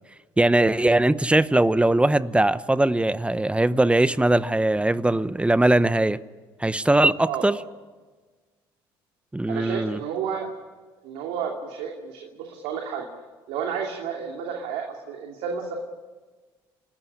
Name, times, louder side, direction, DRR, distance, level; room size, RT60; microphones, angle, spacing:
voice 1, 0.4-6.2 6.6-7.6 9.3-10.0, right 1 dB, 10° right, 16 dB, 0.9 m, -20 dB
voice 2, 9.5-10.5 11.0-13.0 13.5-15.8, right 7 dB, 80° right, 1 dB, 2.8 m, -31 dB
29.0 x 14.0 x 9.9 m, 1.3 s
supercardioid pair, 70°, 11 cm